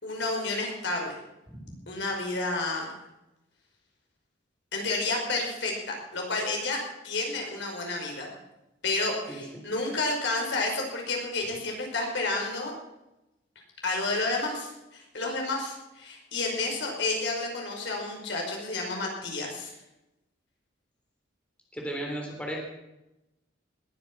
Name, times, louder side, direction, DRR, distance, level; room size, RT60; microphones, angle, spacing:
voice 1, 0.0-1.2 1.9-2.9 4.7-8.4 8.8-12.7 13.8-19.7, left 2 dB, 65° left, 1 dB, 5.3 m, -30 dB
voice 2, 21.7-22.6, right 1 dB, 5° left, 0 dB, 3.4 m, -34 dB
20.5 x 10.5 x 6.1 m, 0.95 s
head